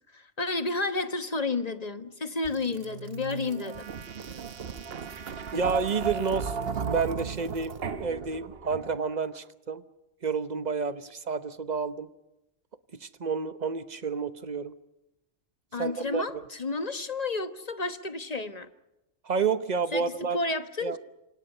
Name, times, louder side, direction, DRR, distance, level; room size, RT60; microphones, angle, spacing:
voice 1, 0.1-3.8 15.7-18.7 19.9-21.0, left 3 dB, 35° left, 9 dB, 1.2 m, -31 dB
sound 1, 2.4-9.2, right 6 dB, 55° right, 1.2 m, -35 dB
voice 2, 5.5-9.8 10.2-12.1 13.0-14.7 15.8-16.4 19.2-20.4 20.8-21.0, right 5 dB, 40° right, 12 dB, 1.0 m, -30 dB
27.5 x 26.0 x 5.5 m, 0.92 s
omnidirectional pair, 1.3 m